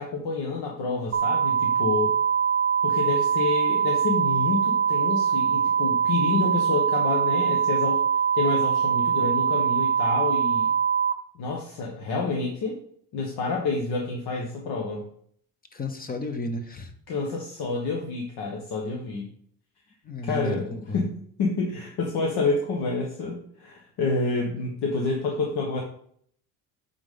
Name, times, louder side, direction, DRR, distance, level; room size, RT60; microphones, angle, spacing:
voice 1, 0.0-2.1 2.8-8.0 8.3-10.7 11.3-12.8 13.1-15.0 17.1-19.3 20.2-25.8, left 3 dB, 70° left, 0 dB, 1.3 m, -28 dB
sound 1, 1.1-11.1, right 7 dB, 30° right, 0.6 m, -23 dB
voice 2, 15.7-16.9 20.0-21.1, left 2 dB, 25° left, 7 dB, 0.6 m, -32 dB
8.7 x 4.1 x 3.7 m, 0.63 s
cardioid pair, 145°, 40 cm